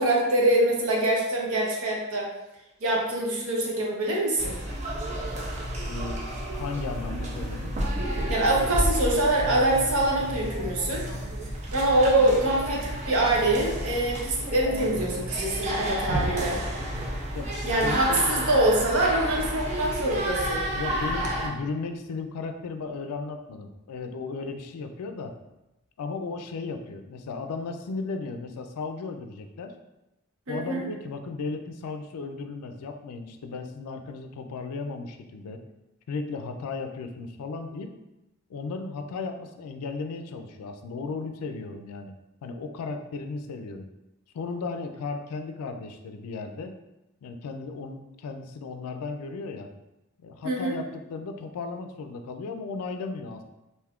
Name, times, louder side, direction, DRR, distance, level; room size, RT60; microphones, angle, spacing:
voice 1, 0.0-2.3 2.8-4.6 8.3-11.0 11.7-16.6 17.6-20.6 30.5-30.8 50.4-50.7, right 1 dB, 70° right, -2 dB, 0.7 m, -24 dB
sound 1, 4.4-21.5, right 1 dB, 30° right, 0.4 m, -31 dB
voice 2, 5.9-7.8 12.0-12.1 17.3-18.4 20.8-25.4 26.0-29.7 30.5-35.6 36.1-37.9 38.5-42.1 42.4-43.9 44.3-46.8 47.2-49.7 50.2-53.4, left 4 dB, 90° left, 6 dB, 0.4 m, -35 dB
Boom, 16.1-23.0 23.5-23.6, right 1 dB, 15° right, 0.9 m, -39 dB
2.6 x 2.3 x 3.5 m, 0.95 s
head